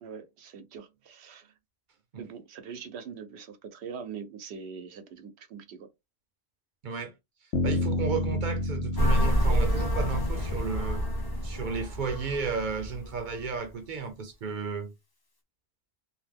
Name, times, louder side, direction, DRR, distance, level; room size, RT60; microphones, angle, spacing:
voice 1, 0.0-1.5 2.2-5.9, right 6 dB, 90° right, 0.9 m, -43 dB
voice 2, 6.8-7.1 7.6-11.0 11.4-14.9, right 5 dB, 55° right, 0.7 m, -33 dB
sound 1, 7.5-11.5, left 1 dB, 85° left, 1.0 m, -31 dB
sound 2, 9.0-13.5, equal, 25° left, 0.7 m, -28 dB
2.6 x 2.1 x 3.4 m
omnidirectional pair, 1.1 m